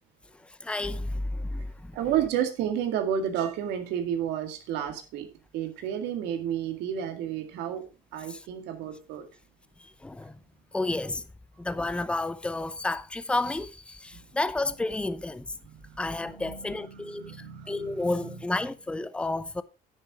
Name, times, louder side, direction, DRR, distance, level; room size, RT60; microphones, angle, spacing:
voice 1, 0.6-1.9 8.3-8.4 10.0-10.3 10.7-11.2 11.6-15.4 16.0-17.3 17.7-19.6, left 2 dB, 5° left, 0.6 m, -31 dB
voice 2, 1.9-5.3 5.5-7.8 8.1-9.3 15.6-18.4, right 9 dB, 90° right, 2.0 m, -31 dB
9.8 x 9.3 x 3.6 m
cardioid pair, 110°, 17 cm